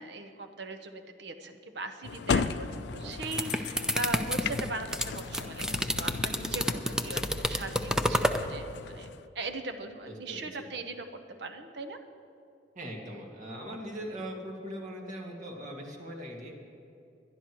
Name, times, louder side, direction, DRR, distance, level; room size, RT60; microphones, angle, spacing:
voice 1, 0.0-9.1 9.3-11.1 11.4-12.0, right 2 dB, 70° right, 7 dB, 0.9 m, -39 dB
sound 1, 2.0-9.3, left 5 dB, 65° left, 0.4 m, -36 dB
sound 2, 3.0-8.4, equal, 5° right, 0.5 m, -29 dB
voice 2, 10.1-10.7 12.8-16.5, equal, 45° right, 0 dB, 2.0 m, -40 dB
21.5 x 11.5 x 3.1 m, 2.6 s
head